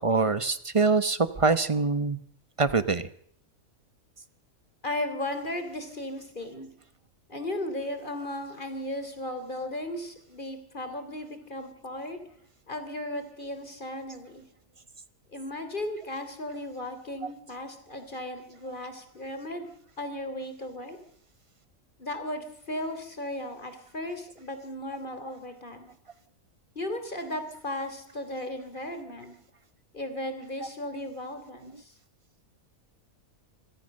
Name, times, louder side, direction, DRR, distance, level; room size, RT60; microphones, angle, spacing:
voice 1, 0.0-2.2 2.6-3.1, right 4 dB, 25° right, 14 dB, 0.9 m, -24 dB
voice 2, 4.8-6.7 7.3-12.2 12.7-14.4 15.3-19.7 20.0-21.0 22.0-25.9 26.7-29.3 29.9-31.9, left 1 dB, 35° left, 8 dB, 3.5 m, -36 dB
25.5 x 17.0 x 6.6 m, 0.65 s
omnidirectional pair, 1.5 m